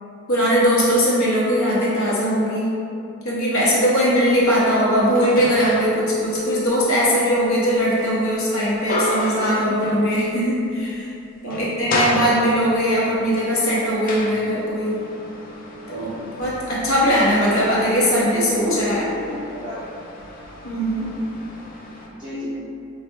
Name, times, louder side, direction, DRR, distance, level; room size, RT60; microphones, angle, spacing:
voice 1, 0.3-2.7 3.2-11.1 11.4-15.0 15.9-19.0 20.6-21.1, equal, 80° left, -7 dB, 0.7 m, -20 dB
sound 1, 4.4-6.0 6.4-10.5 10.8-10.9 11.3-12.8 13.4-22.1, left 2 dB, 40° left, 0.3 m, -32 dB
voice 2, 17.1-17.5 18.3-20.0 22.2-22.5, left 1 dB, 20° right, -13 dB, 0.6 m, -31 dB
4.3 x 2.0 x 2.6 m, 2.6 s
head